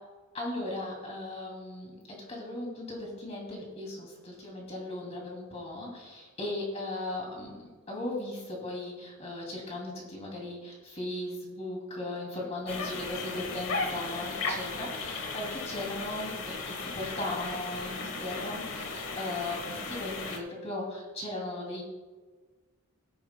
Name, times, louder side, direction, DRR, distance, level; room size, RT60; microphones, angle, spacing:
voice 1, 0.3-7.6 7.9-21.8, left 1 dB, 30° left, -2 dB, 2.6 m, -37 dB
sound 1, 12.7-20.4, left 3 dB, 60° left, 1.3 m, -36 dB
17.5 x 9.9 x 2.2 m, 1.4 s
head